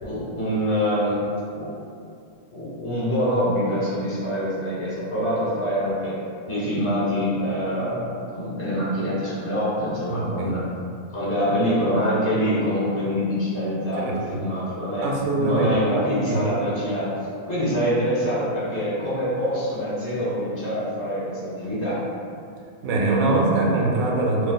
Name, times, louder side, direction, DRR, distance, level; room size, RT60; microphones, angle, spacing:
voice 1, 0.0-1.2 1.6-1.7 2.5-6.2 6.5-10.6 11.1-15.1 15.4-17.1 17.5-22.0, equal, 45° left, -10 dB, 1.1 m, -25 dB
voice 2, 10.1-10.5 14.0-14.4 15.0-16.4 22.8-24.5, right 2 dB, 85° right, -1 dB, 1.0 m, -23 dB
2.6 x 2.3 x 3.8 m, 2.4 s
omnidirectional pair, 1.4 m